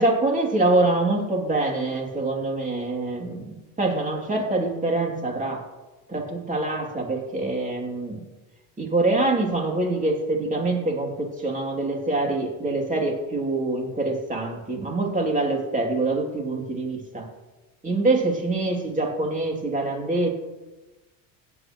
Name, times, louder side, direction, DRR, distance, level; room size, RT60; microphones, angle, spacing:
voice 1, 0.0-5.6 6.1-8.2 8.8-17.3 17.8-20.3, right 2 dB, 15° right, 1 dB, 2.9 m, -25 dB
17.0 x 8.8 x 3.1 m, 1.1 s
supercardioid pair, 100°, 44 cm